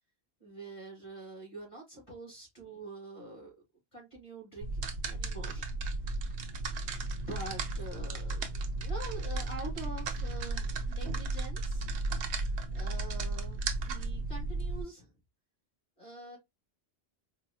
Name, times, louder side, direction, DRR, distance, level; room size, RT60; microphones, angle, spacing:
voice 1, 0.4-3.6 3.9-5.7 7.0-8.5 8.8-11.9 12.7-15.1 16.0-16.4, right 2 dB, 30° left, 2.0 m, -45 dB
sound 1, 4.6-14.8, right 3 dB, 85° right, 0.9 m, -34 dB
4.3 x 2.1 x 2.6 m
omnidirectional pair, 1.1 m